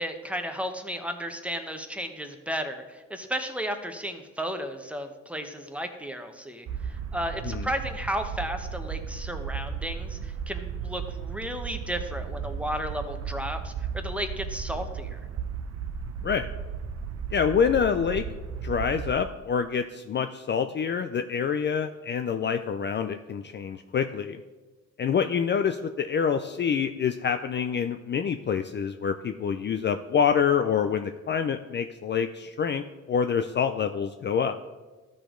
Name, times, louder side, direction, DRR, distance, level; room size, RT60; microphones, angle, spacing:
voice 1, 0.0-15.2, equal, 5° right, 6 dB, 0.9 m, -34 dB
sound 1, 6.7-19.2, right 6 dB, 55° right, 0.7 m, -35 dB
voice 2, 17.3-18.2 18.6-24.4 25.0-34.6, left 7 dB, 35° left, 8 dB, 0.4 m, -26 dB
13.0 x 5.1 x 3.8 m, 1.2 s
cardioid pair, 90°, 30 cm